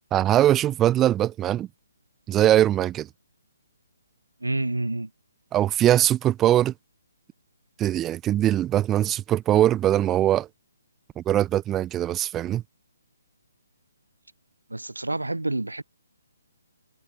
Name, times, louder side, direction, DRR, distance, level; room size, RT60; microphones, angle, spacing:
voice 1, 0.1-1.7 2.3-3.1 5.5-6.7 7.8-10.5 11.2-12.6, right 12 dB, 15° right, 0.6 m, -21 dB
voice 2, 4.4-5.1 14.7-15.8, right 2 dB, 80° right, 0.8 m, -28 dB
figure-of-eight pair, 140°, 0 cm